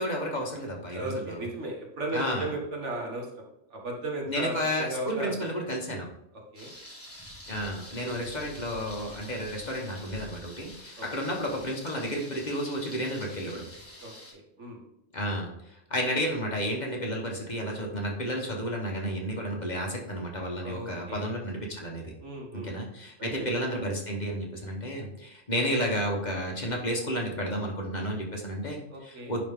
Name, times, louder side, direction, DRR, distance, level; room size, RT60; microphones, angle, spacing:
voice 1, 0.0-1.5 2.1-2.5 4.3-6.1 7.5-13.6 15.1-22.1 22.5-29.4, equal, 40° left, 0 dB, 1.3 m, -32 dB
voice 2, 0.9-3.5 3.7-5.5 6.5-6.7 8.0-8.2 11.0-11.3 14.0-14.8 20.6-21.3 22.2-22.7 23.2-23.5 28.9-29.3, right 2 dB, 80° right, 0 dB, 1.8 m, -36 dB
Thunder, 6.5-14.3, left 1 dB, 10° left, 1.7 m, -47 dB
10.0 x 3.6 x 3.6 m, 0.82 s
omnidirectional pair, 1.2 m